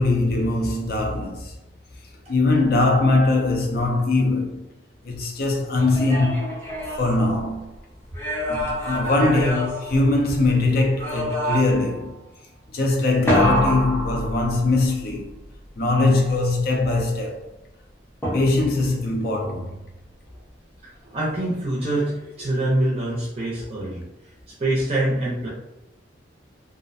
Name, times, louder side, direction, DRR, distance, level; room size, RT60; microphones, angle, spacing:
voice 1, 0.0-1.5 2.3-4.7 5.0-6.4 7.0-7.6 8.5-12.2 12.7-15.3 15.8-17.4 18.3-19.8, left 2 dB, 55° left, 0.5 m, -21 dB
sound 1, 5.8-7.7 8.1-10.5 11.0-11.9 13.3-14.9 18.2-18.9, equal, 15° left, 0.6 m, -26 dB
voice 2, 21.0-24.0 24.6-25.5, right 1 dB, 35° right, 0.5 m, -24 dB
2.4 x 2.1 x 2.5 m
head